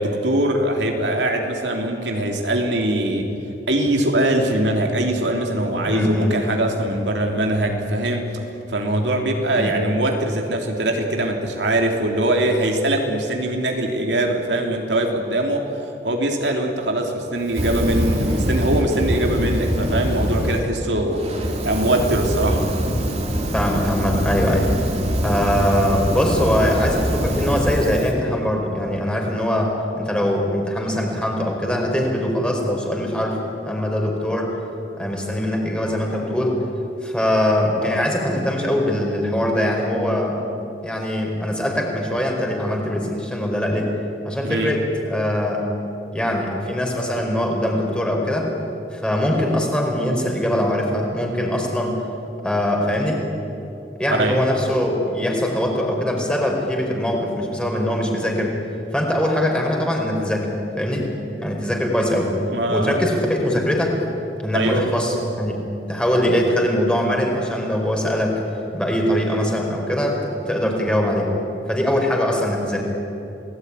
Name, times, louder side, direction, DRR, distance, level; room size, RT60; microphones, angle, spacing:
voice 1, 0.0-3.3 3.7-8.2 8.7-15.7 16.0-21.2 21.6-22.6 44.4-44.7 54.1-54.4 62.5-63.0 64.5-64.8, right 1 dB, 80° right, 2 dB, 3.4 m, -22 dB
voice 2, 5.8-6.4 9.6-9.7 23.5-24.9 25.2-29.7 30.0-34.5 35.0-36.6 37.0-40.4 40.8-43.9 44.2-45.6 46.1-48.5 48.9-52.0 52.4-53.2 54.0-58.6 58.9-60.5 60.8-61.1 61.4-62.3 62.7-63.9 64.4-65.6 65.9-68.4 68.7-71.3 71.7-73.1, left 1 dB, 5° left, 0 dB, 4.7 m, -22 dB
Fire, 17.5-20.6 21.1-28.1, equal, 40° right, 3.3 m, -23 dB
29.0 x 18.5 x 9.9 m, 2.9 s
head